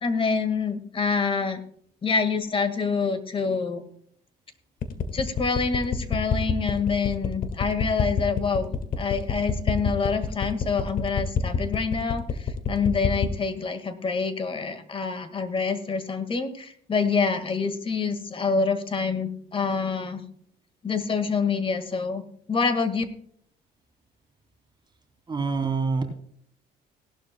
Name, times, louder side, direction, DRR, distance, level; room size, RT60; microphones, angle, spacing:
voice 1, 0.0-1.6 2.0-3.8 5.1-20.2 20.8-22.2 22.5-23.0, left 5 dB, 30° left, 10 dB, 1.7 m, -26 dB
sound 1, 4.8-13.4, left 7 dB, 55° left, 1.6 m, -26 dB
voice 2, 25.3-26.0, right 4 dB, 25° right, 4 dB, 2.7 m, -25 dB
18.0 x 12.0 x 2.2 m, 0.62 s
cardioid pair, 110°, 17 cm